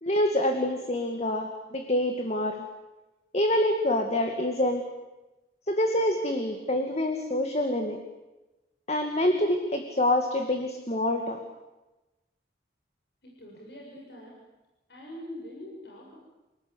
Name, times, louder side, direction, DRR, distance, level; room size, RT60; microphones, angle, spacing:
voice 1, 0.0-2.6 3.3-4.8 5.7-8.0 8.9-11.4, left 1 dB, 35° left, 5 dB, 2.4 m, -26 dB
voice 2, 13.2-14.4 14.9-16.2, left 1 dB, 70° left, -2 dB, 7.5 m, -43 dB
29.5 x 19.5 x 9.7 m, 1.1 s
head